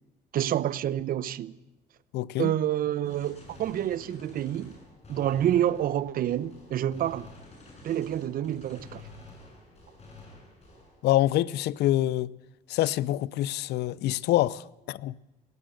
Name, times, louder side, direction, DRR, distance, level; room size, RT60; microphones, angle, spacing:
voice 1, 0.3-1.5 2.4-4.8 5.1-7.3 7.8-9.0, right 11 dB, 60° right, 0.9 m, -28 dB
voice 2, 2.1-2.5 11.0-12.3 12.7-15.2, left 14 dB, 75° left, 0.6 m, -26 dB
Gunshot gunfire, 3.0-11.0, left 2 dB, 40° left, 7.7 m, -50 dB
19.0 x 17.5 x 7.9 m
cardioid pair, 110°, 17 cm